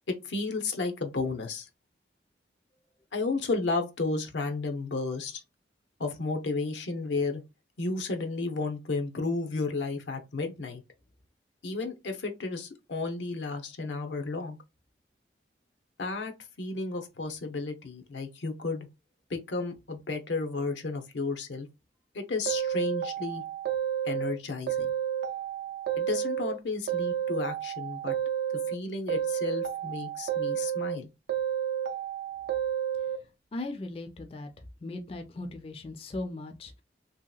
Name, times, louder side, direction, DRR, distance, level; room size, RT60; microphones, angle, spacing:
voice 1, 0.3-1.7 3.1-5.4 6.0-7.4 7.8-10.8 11.6-14.6 16.0-16.3 16.6-18.9 19.3-21.7 22.1-23.4 24.0-24.9 26.0-28.1 28.7-31.1, left 3 dB, 90° left, 0.7 m, -32 dB
sound 1, 22.5-24.3 24.7-26.6 26.9-28.8 29.1-31.0 31.3-33.2, right 9 dB, 70° right, 0.4 m, -31 dB
voice 2, 33.5-34.5 34.8-36.8, left 2 dB, 30° left, 0.4 m, -38 dB
2.9 x 2.8 x 2.3 m
head